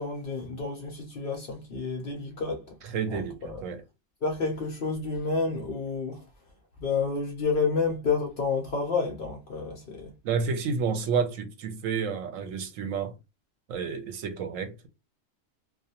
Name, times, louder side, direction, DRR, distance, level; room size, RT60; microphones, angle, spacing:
voice 1, 0.0-2.7 3.1-3.6 4.2-6.2 6.8-10.1, left 4 dB, 55° left, 0.6 m, -30 dB
voice 2, 2.8-3.8 10.2-13.1 13.7-14.9, right 6 dB, 80° right, 1.0 m, -30 dB
2.3 x 2.2 x 2.7 m
omnidirectional pair, 1.4 m